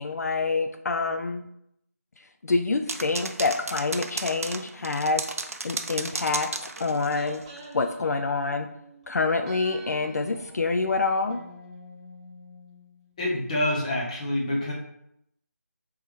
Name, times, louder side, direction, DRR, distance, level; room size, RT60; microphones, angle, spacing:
voice 1, 0.0-1.5 2.2-5.2 5.6-7.4 7.7-8.7 9.1-11.4, left 3 dB, 75° left, 6 dB, 0.3 m, -27 dB
sound 1, 2.9-7.4, right 3 dB, 60° right, 0.5 m, -33 dB
sound 2, 6.1-9.1 9.4-13.3 13.5-13.6, right 1 dB, 25° right, 1.0 m, -46 dB
voice 2, 13.2-14.7, left 1 dB, 25° left, -4 dB, 0.9 m, -27 dB
3.3 x 3.1 x 3.3 m, 0.78 s
figure-of-eight pair, 165°, 9 cm